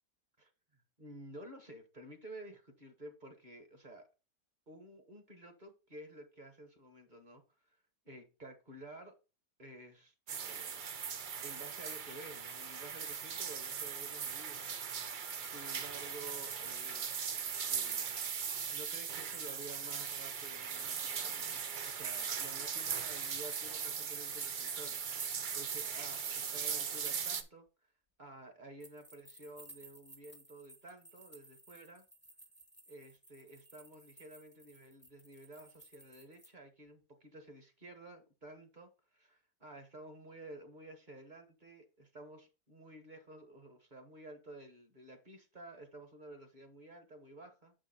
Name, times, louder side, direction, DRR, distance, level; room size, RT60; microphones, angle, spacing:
voice 1, 0.4-4.1 4.7-7.4 8.0-9.1 9.6-10.8 11.4-14.7 15.1-17.3 17.7-27.7 28.2-32.0 32.9-47.7, right 1 dB, 30° right, 1.3 m, -52 dB
sound 1, 10.3-27.4, right 7 dB, 60° right, 0.5 m, -39 dB
sound 2, 24.6-27.4 28.8-36.5, right 1 dB, 10° left, 0.8 m, -57 dB
6.7 x 5.3 x 4.1 m
omnidirectional pair, 1.6 m